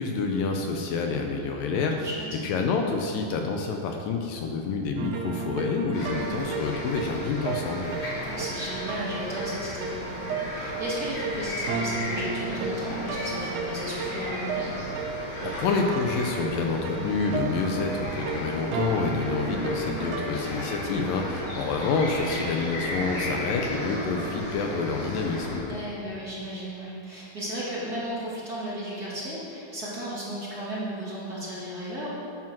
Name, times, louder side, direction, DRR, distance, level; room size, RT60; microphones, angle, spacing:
voice 1, 0.0-2.1 2.4-7.9 15.4-25.7, left 4 dB, 75° left, 3 dB, 2.4 m, -28 dB
voice 2, 2.0-2.5 6.0-6.4 8.3-14.7 17.0-17.2 21.4-21.6 25.7-32.2, equal, 30° right, -8 dB, 2.6 m, -35 dB
sound 1, 5.0-20.3, right 4 dB, 90° right, 1.4 m, -34 dB
sound 2, 5.9-25.6, left 1 dB, 55° left, 4.2 m, -35 dB
12.0 x 9.4 x 6.1 m, 2.8 s
omnidirectional pair, 4.3 m